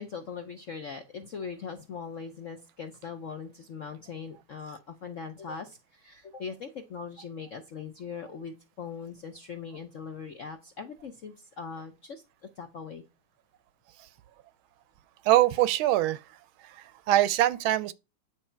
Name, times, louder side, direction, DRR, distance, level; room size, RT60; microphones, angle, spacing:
voice 1, 0.0-13.0, left 5 dB, 65° left, 0.7 m, -40 dB
voice 2, 15.2-16.2 16.6-17.9, right 14 dB, 80° right, 1.4 m, -23 dB
9.6 x 6.1 x 4.4 m
omnidirectional pair, 2.3 m